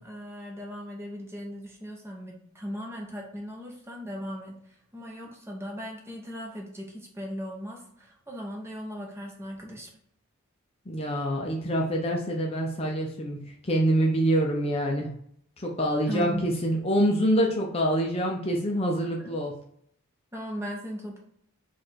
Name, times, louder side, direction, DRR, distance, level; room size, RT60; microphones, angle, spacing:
voice 1, 0.0-4.6 4.9-9.9 16.1-16.4 19.2-19.3 20.3-21.2, equal, 10° right, 0 dB, 0.8 m, -38 dB
voice 2, 10.9-13.4 13.6-15.1 15.6-19.5, equal, 25° left, 0 dB, 0.5 m, -26 dB
4.6 x 2.5 x 4.3 m, 0.67 s
head